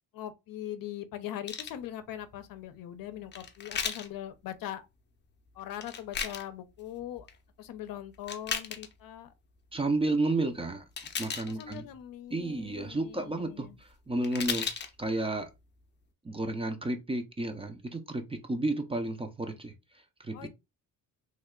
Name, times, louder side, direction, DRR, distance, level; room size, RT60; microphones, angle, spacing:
voice 1, 0.1-4.9 5.5-7.3 7.6-9.3 11.5-13.8 20.3-20.5, left 11 dB, 70° left, 0.6 m, -41 dB
sound 1, 1.5-1.8 3.3-4.1 5.8-6.5 7.0-7.4 8.1-8.9 11.0-11.8 13.9-14.0 14.2-14.9 15.5-15.6, left 6 dB, 30° left, 0.6 m, -35 dB
voice 2, 9.7-10.8 11.2-11.9 12.3-14.7 15.0-15.5 16.2-19.7 20.2-20.5, right 2 dB, 15° right, 0.5 m, -32 dB
3.2 x 2.1 x 3.6 m
cardioid pair, 95°, 35 cm